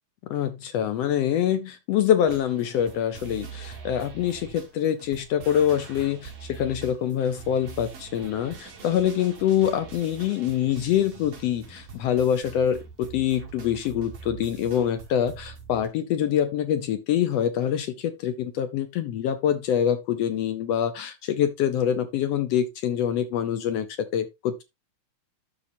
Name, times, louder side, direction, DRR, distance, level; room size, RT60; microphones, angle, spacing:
voice 1, 0.3-23.9 24.1-24.6, left 9 dB, 70° left, 1.6 m, -25 dB
sound 1, 2.2-15.9, right 5 dB, 55° right, 3.4 m, -43 dB
13.0 x 5.1 x 2.6 m
omnidirectional pair, 3.5 m